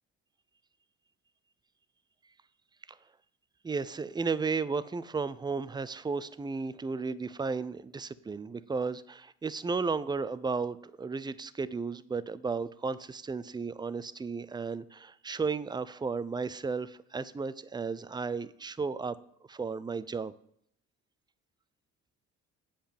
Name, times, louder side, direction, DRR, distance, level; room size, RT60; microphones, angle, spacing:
voice 1, 3.6-19.2 19.5-20.3, right 4 dB, 15° right, 16 dB, 0.5 m, -34 dB
7.9 x 5.1 x 7.0 m, 0.69 s
supercardioid pair, 65°, 31 cm